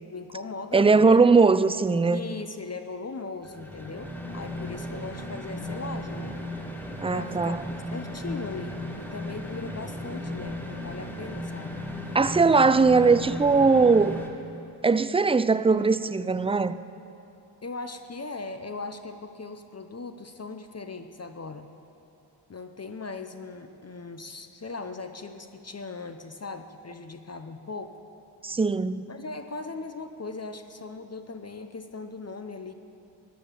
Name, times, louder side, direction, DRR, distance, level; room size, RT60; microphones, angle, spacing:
voice 1, 0.1-1.1 2.1-6.4 7.1-7.6 7.9-11.8 17.6-21.7 22.5-28.0 29.1-32.7, left 3 dB, 35° left, 0.9 m, -39 dB
voice 2, 0.7-2.2 7.0-7.6 12.1-14.2 14.8-16.8 28.4-29.1, right 4 dB, 15° right, 0.4 m, -20 dB
sound 1, 3.4-14.3, left 1 dB, 5° left, 2.0 m, -36 dB
14.0 x 10.0 x 7.4 m
supercardioid pair, 45°, 46 cm